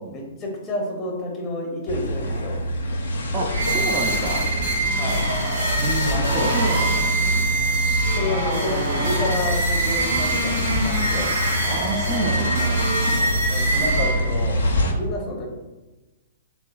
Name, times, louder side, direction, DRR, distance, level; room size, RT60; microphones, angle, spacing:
voice 1, 0.0-2.5 4.9-5.2 6.1-6.5 8.1-11.3 13.5-14.6 15.0-15.5, left 1 dB, 25° left, 0 dB, 0.6 m, -29 dB
sound 1, 1.9-14.9, equal, 70° left, 0.4 m, -25 dB
voice 2, 3.3-4.5 5.8-7.2 11.7-12.8, right 2 dB, 35° right, 1 dB, 0.3 m, -29 dB
sound 2, 3.5-14.5, right 2 dB, 65° right, 0.9 m, -25 dB
2.9 x 2.3 x 2.2 m, 1.1 s
figure-of-eight pair, 115°, 0 cm